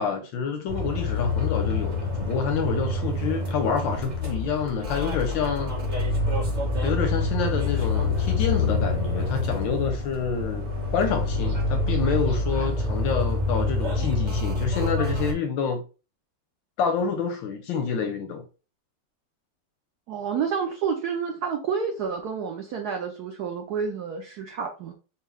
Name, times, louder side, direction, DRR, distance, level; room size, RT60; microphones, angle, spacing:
voice 1, 0.0-5.7 6.8-15.8 16.8-18.4, left 6 dB, 75° left, 1.1 m, -28 dB
sound 1, 0.7-15.3, left 2 dB, 60° right, 0.4 m, -26 dB
voice 2, 20.1-24.9, right 6 dB, 85° right, 0.8 m, -29 dB
4.3 x 2.3 x 3.4 m
omnidirectional pair, 2.4 m